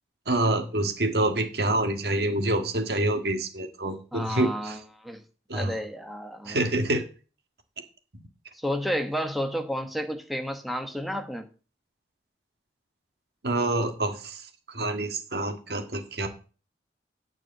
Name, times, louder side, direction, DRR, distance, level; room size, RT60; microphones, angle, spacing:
voice 1, 0.3-4.8 5.5-5.8 6.4-7.0 13.4-14.5 14.7-16.3, right 1 dB, 65° right, 5 dB, 1.7 m, -27 dB
voice 2, 4.1-5.2 5.5-6.6 8.5-11.5, equal, ahead, 4 dB, 1.2 m, -31 dB
9.5 x 4.7 x 7.8 m, 0.36 s
head